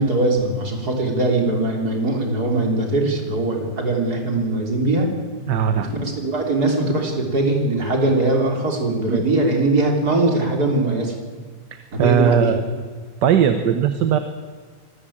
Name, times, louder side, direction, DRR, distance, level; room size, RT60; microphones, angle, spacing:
voice 1, 0.0-5.1 5.8-11.2 11.9-12.5, right 2 dB, 60° right, 1 dB, 4.1 m, -21 dB
voice 2, 5.5-5.9 9.1-9.2 11.7-12.6 13.2-14.2, right 8 dB, 75° right, 9 dB, 1.7 m, -19 dB
24.5 x 14.0 x 8.8 m, 1.5 s
omnidirectional pair, 1.9 m